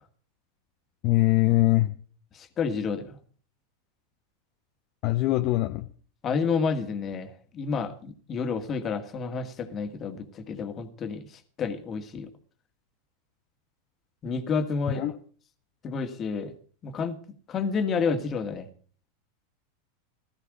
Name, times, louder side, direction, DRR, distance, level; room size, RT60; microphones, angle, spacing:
voice 1, 1.0-1.9 5.0-5.9 14.9-15.2, left 17 dB, 50° left, 7 dB, 0.8 m, -22 dB
voice 2, 2.3-3.2 6.2-11.3 11.6-12.3 14.2-15.0 15.8-16.5 16.8-17.2 17.5-18.7, left 5 dB, 35° left, 8 dB, 1.9 m, -30 dB
16.0 x 13.5 x 4.9 m, 0.43 s
hypercardioid pair, 95°, 0 cm